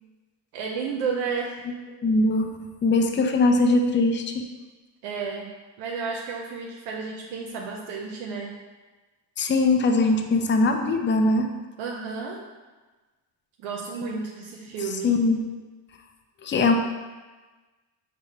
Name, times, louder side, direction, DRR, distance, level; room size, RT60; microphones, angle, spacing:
voice 1, 0.5-1.6 5.0-8.5 11.8-12.4 13.6-15.2, right 5 dB, 90° right, -1 dB, 0.6 m, -32 dB
voice 2, 2.0-2.5 2.8-4.4 9.4-11.5 15.0-15.4 16.4-16.7, left 2 dB, 25° left, 4 dB, 0.5 m, -21 dB
4.8 x 2.1 x 4.5 m, 1.3 s
supercardioid pair, 65°, 49 cm